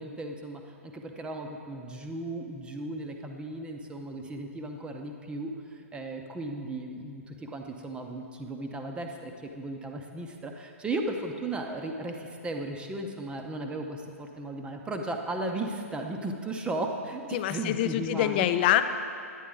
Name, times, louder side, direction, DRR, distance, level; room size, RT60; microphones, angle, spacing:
voice 1, 0.0-18.4, right 2 dB, 10° right, 3 dB, 0.7 m, -36 dB
voice 2, 17.3-18.8, left 12 dB, 40° left, 11 dB, 0.5 m, -25 dB
9.9 x 9.3 x 3.8 m, 2.3 s
figure-of-eight pair, 110°, 8 cm